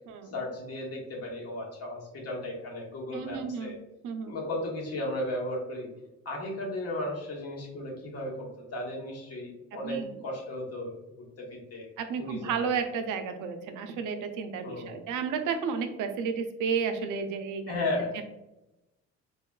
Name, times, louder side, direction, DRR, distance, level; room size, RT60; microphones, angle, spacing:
voice 1, 0.3-3.8 4.3-5.9 6.2-11.9 12.2-12.7 14.6-14.9 17.7-18.2, left 1 dB, 55° left, -2 dB, 1.0 m, -35 dB
voice 2, 3.1-3.8 4.0-4.4 9.8-10.1 12.0-17.8 18.1-18.2, right 6 dB, 85° right, 6 dB, 0.5 m, -32 dB
3.4 x 2.3 x 2.2 m, 0.95 s
cardioid pair, 90°, 30 cm